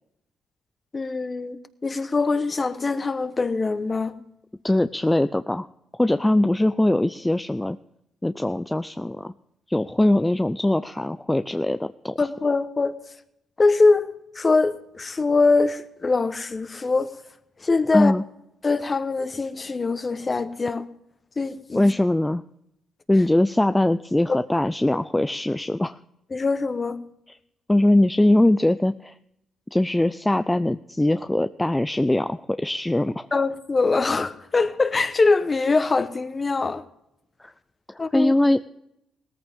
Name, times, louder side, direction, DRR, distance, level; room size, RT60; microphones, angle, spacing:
voice 1, 0.9-4.1 12.2-12.9 13.6-17.1 17.6-18.1 18.6-20.8 21.4-21.8 26.3-27.0 33.3-36.8 38.0-38.3, left 3 dB, 30° left, 1.1 m, -23 dB
voice 2, 4.6-5.7 5.9-7.8 8.2-9.3 9.7-12.2 17.9-18.2 21.7-22.4 23.1-26.0 27.7-29.1 29.7-33.3 37.4-37.5 37.9-38.6, left 1 dB, 10° left, 0.4 m, -21 dB
18.0 x 14.0 x 3.6 m
cardioid pair, 90°, 0 cm